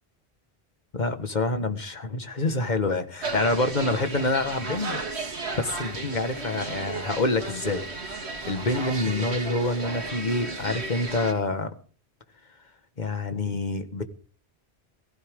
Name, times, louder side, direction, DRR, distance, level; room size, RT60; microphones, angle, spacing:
voice 1, 0.9-5.0 5.5-7.8 8.5-11.7 13.0-14.0, left 2 dB, 45° left, 8 dB, 1.7 m, -27 dB
sound 1, 3.2-11.3, right 3 dB, 85° right, 2.3 m, -34 dB
18.0 x 16.0 x 3.7 m, 0.41 s
omnidirectional pair, 1.1 m